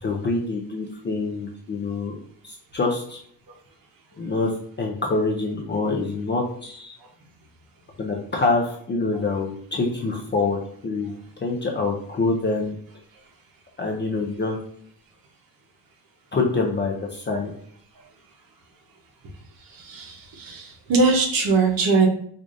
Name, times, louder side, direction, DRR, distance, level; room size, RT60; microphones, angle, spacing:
voice 1, 0.0-2.2 2.4-3.2 4.2-4.5 4.8-7.0 8.0-11.1 11.4-12.8 13.8-14.6 16.3-17.5, left 3 dB, 30° left, -1 dB, 0.4 m, -25 dB
voice 2, 19.7-22.1, right 4 dB, 55° right, 1 dB, 0.9 m, -21 dB
4.6 x 2.5 x 2.5 m, 0.62 s
cardioid pair, 180°, 42 cm